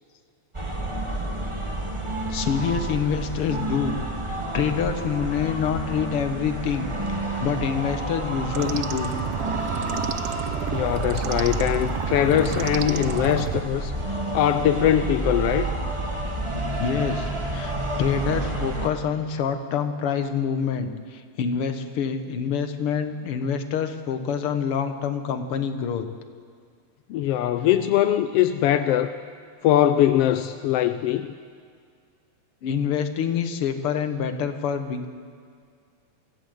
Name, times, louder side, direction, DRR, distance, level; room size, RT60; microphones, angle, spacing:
sound 1, 0.5-18.9, right 2 dB, 20° right, 0.7 m, -29 dB
voice 1, 2.3-4.0 4.2-6.9 7.4-9.2 16.8-26.1 32.6-35.1, left 7 dB, 55° left, 8 dB, 1.9 m, -26 dB
sound 2, 8.5-13.6, right 9 dB, 70° right, 1.6 m, -30 dB
voice 2, 10.7-13.9 14.3-15.8 27.1-29.1 29.6-31.3, left 11 dB, 75° left, 10 dB, 1.4 m, -21 dB
24.5 x 16.0 x 7.9 m, 2.2 s
omnidirectional pair, 3.4 m